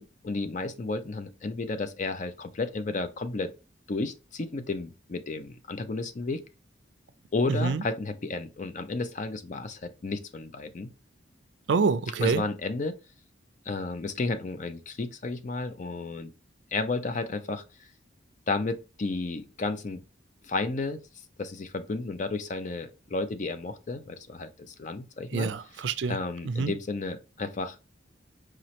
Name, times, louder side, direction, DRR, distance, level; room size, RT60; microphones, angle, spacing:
voice 1, 0.0-3.5 3.9-6.4 7.3-10.9 12.2-13.0 13.7-16.3 16.7-17.6 18.5-20.0 20.4-21.0 21.4-25.5 26.1-27.8, left 3 dB, 40° left, 0.4 m, -32 dB
voice 2, 7.5-7.8 11.7-12.4 25.3-26.2 26.5-26.7, right 4 dB, 70° right, 0.4 m, -26 dB
4.8 x 3.1 x 2.8 m
head